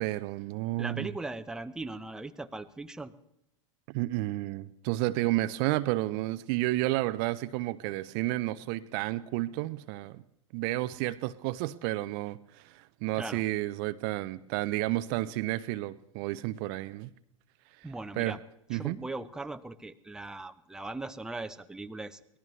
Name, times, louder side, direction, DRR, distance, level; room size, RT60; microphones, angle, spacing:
voice 1, 0.0-1.1 3.9-10.2 10.5-17.1 17.8-17.9 18.2-18.4 18.7-19.0, right 17 dB, 45° right, 14 dB, 0.5 m, -31 dB
voice 2, 0.8-3.1 13.1-13.4 17.8-18.4 18.7-22.2, right 2 dB, 5° right, 9 dB, 0.7 m, -39 dB
24.0 x 18.5 x 3.2 m, 0.80 s
figure-of-eight pair, 95°, 16 cm